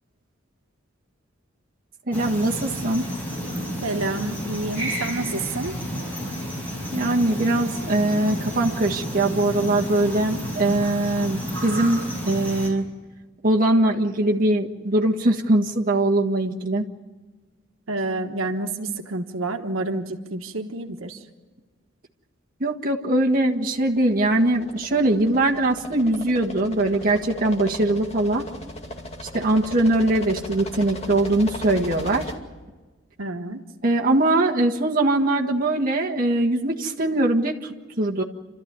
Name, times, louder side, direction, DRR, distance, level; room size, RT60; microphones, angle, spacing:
sound 1, 2.1-12.7, equal, 10° left, 5.2 m, -31 dB
voice 1, 2.1-3.1 6.9-12.9 13.4-16.9 22.6-28.4 29.3-32.3 33.8-38.2, right 2 dB, 45° right, -1 dB, 1.5 m, -21 dB
voice 2, 3.8-5.8 17.9-21.2 33.2-33.6, right 2 dB, 85° right, 5 dB, 1.3 m, -29 dB
sound 2, 23.7-32.4, left 1 dB, 30° left, 2.3 m, -38 dB
29.0 x 13.5 x 9.6 m, 1.3 s
head